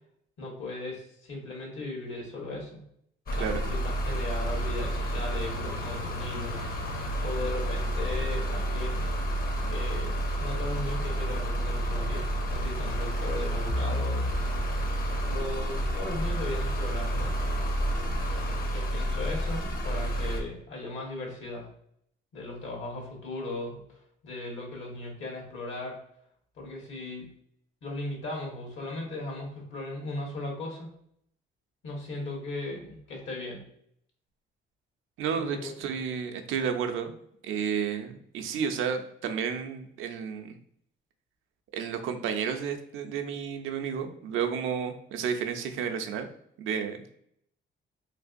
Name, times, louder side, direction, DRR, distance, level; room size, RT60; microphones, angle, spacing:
voice 1, 0.4-2.8 3.4-3.8 4.0-9.0 9.7-14.3 15.2-17.4 18.6-21.7 22.3-24.0 24.2-26.0 26.6-27.3 27.8-30.9 31.8-33.6 35.3-35.7, left 2 dB, 75° left, -1 dB, 1.5 m, -37 dB
sound 1, 3.3-20.4, equal, 50° left, 0.8 m, -30 dB
voice 2, 35.2-37.1 37.4-40.6 41.7-46.3 46.6-47.2, right 7 dB, 85° right, 6 dB, 0.5 m, -31 dB
3.2 x 2.9 x 2.5 m, 0.70 s
cardioid pair, 90°, 20 cm